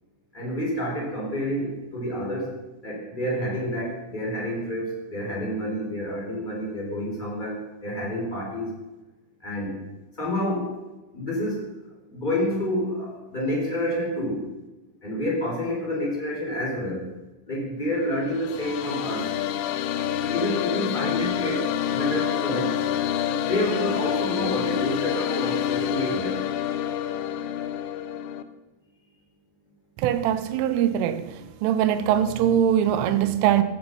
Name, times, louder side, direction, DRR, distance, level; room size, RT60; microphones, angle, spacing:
voice 1, 0.3-2.5 2.8-8.7 9.4-9.7 10.2-10.7 11.1-11.6 12.1-14.4 15.0-17.1 17.5-19.3 20.3-22.7 23.3-26.4, left 1 dB, 10° left, 4.1 m, -28 dB
sound 1, 18.2-28.4, left 10 dB, 80° left, 3.3 m, -27 dB
voice 2, 30.0-31.3 31.6-33.6, right 10 dB, 80° right, 3.4 m, -22 dB
16.0 x 12.5 x 5.5 m
omnidirectional pair, 5.7 m